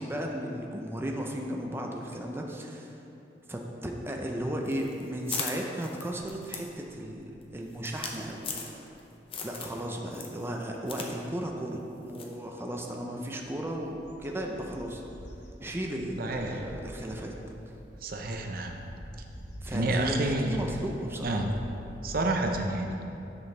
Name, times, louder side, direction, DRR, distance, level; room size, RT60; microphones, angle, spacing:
voice 1, 0.0-2.9 3.5-8.4 9.4-15.0 15.6-17.4 19.6-21.4, right 1 dB, 15° right, 0 dB, 0.5 m, -35 dB
sound 1, 4.7-9.0 9.3-9.8 10.1-11.1 11.4-11.5 12.1-12.4, left 5 dB, 30° left, 0.7 m, -38 dB
sound 2, 8.1-8.2 8.7-9.0 9.3-10.8 11.4-11.5 13.2-22.6, equal, 80° left, 0.9 m, -46 dB
voice 2, 16.2-16.6 18.0-18.8 19.7-20.6 21.2-21.5 22.0-23.0, right 2 dB, 55° right, 3 dB, 0.6 m, -29 dB
9.6 x 6.1 x 3.3 m, 2.8 s
head